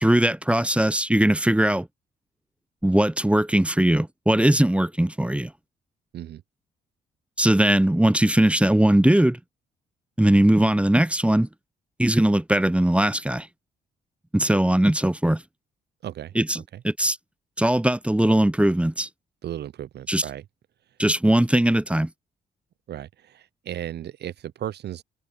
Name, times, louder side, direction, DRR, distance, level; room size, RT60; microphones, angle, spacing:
voice 1, 0.0-1.9 2.8-5.5 7.4-9.4 10.2-11.5 12.0-13.5 14.3-15.4 16.4-16.6 16.8-17.2 17.6-19.1 20.1-20.2 21.0-22.1, right 1 dB, 5° right, 0.8 m, -20 dB
voice 2, 16.0-16.8 19.4-20.4 22.9-25.0, right 11 dB, 55° right, 0.7 m, -35 dB
hypercardioid pair, 45°, 21 cm